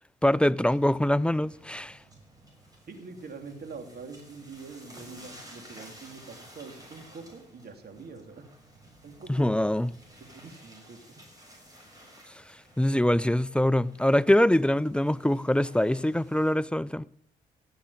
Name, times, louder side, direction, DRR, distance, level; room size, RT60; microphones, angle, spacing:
voice 1, 0.2-2.0 9.3-9.9 12.3-12.4 12.8-17.0, left 1 dB, 5° left, 0.5 m, -24 dB
sound 1, 0.6-16.5, right 1 dB, 20° right, 6.8 m, -53 dB
voice 2, 2.9-8.5 9.0-9.5 10.2-11.2, right 4 dB, 55° right, 3.0 m, -44 dB
17.0 x 7.1 x 8.6 m
hypercardioid pair, 45°, 19 cm